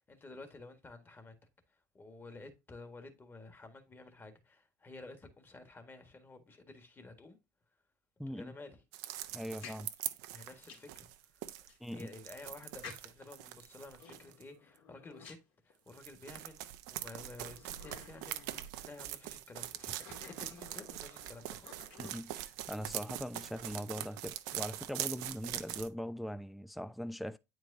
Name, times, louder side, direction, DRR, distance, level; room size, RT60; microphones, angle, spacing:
voice 1, 0.1-1.3 1.7-7.4 8.3-8.8 10.3-15.4 15.6-21.8, left 3 dB, 20° left, 1.6 m, -52 dB
voice 2, 8.2-8.5 9.3-9.9 11.8-12.1 22.0-27.4, equal, ahead, 0.4 m, -41 dB
sound 1, 8.9-14.4 15.9-25.9, right 14 dB, 65° right, 0.7 m, -43 dB
sound 2, 9.4-11.0 11.7-11.8 12.8-13.4 13.9-16.1 16.7-16.8 17.4-19.0 19.7-22.5, left 5 dB, 60° left, 2.3 m, -53 dB
9.0 x 4.7 x 2.7 m
hypercardioid pair, 80°, 10 cm